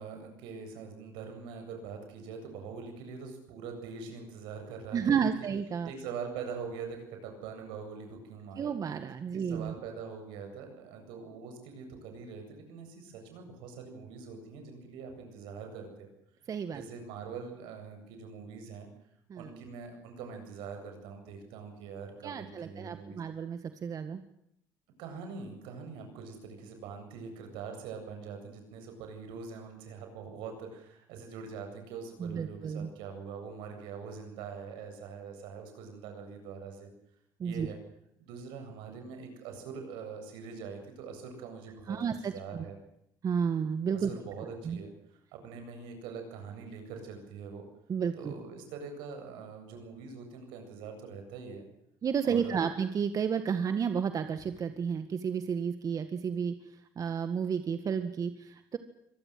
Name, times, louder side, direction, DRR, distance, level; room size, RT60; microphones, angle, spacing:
voice 1, 0.0-5.5 5.8-8.7 9.3-16.1 16.7-18.9 19.3-23.2 25.0-36.9 37.4-37.8 38.2-42.8 43.9-44.9 45.3-47.6 48.1-51.6 52.2-52.7, right 5 dB, 80° right, 5 dB, 7.9 m, -43 dB
voice 2, 4.9-5.9 8.6-9.7 16.5-16.8 19.3-19.5 22.2-24.2 32.2-32.9 37.4-37.7 41.9-42.7 43.2-44.1 44.6-44.8 47.9-48.3 52.0-58.8, right 7 dB, 45° right, 9 dB, 1.8 m, -32 dB
25.5 x 19.0 x 7.7 m, 0.75 s
supercardioid pair, 80°, 8 cm